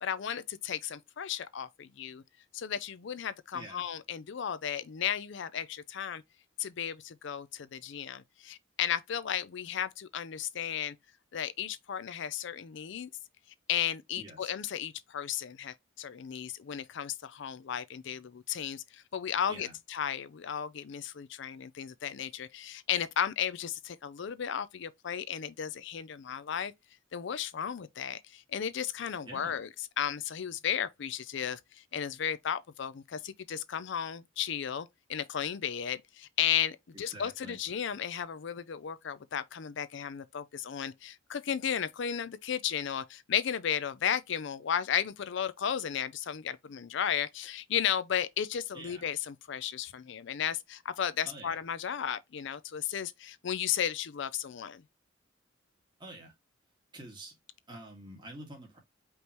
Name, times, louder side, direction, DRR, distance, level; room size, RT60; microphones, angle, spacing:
voice 1, 0.0-2.2 2.5-6.2 6.6-10.9 11.3-13.1 13.7-26.7 27.1-29.7 30.0-54.8, left 9 dB, 65° left, 0.4 m, -34 dB
voice 2, 3.5-3.9 14.2-14.5 19.5-19.7 29.2-29.6 37.1-37.6 48.7-49.0 51.2-51.6 56.0-56.3 56.9-57.4 57.7-58.8, right 1 dB, 25° right, 2.0 m, -47 dB
5.2 x 3.1 x 2.9 m
head